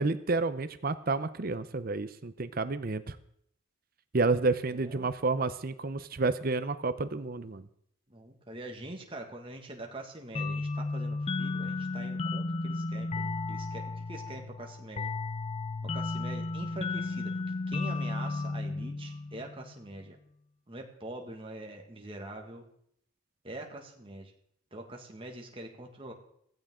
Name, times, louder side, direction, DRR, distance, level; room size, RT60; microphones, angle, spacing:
voice 1, 0.0-3.2 4.1-7.7, right 3 dB, 45° right, 12 dB, 0.6 m, -30 dB
voice 2, 4.7-5.1 8.1-15.1 15.8-20.2 20.7-22.6 23.4-24.3 24.7-26.1, right 1 dB, 25° right, 2 dB, 1.8 m, -44 dB
sound 1, 10.3-19.7, left 3 dB, 30° left, 0.4 m, -34 dB
15.5 x 15.5 x 3.7 m, 0.70 s
head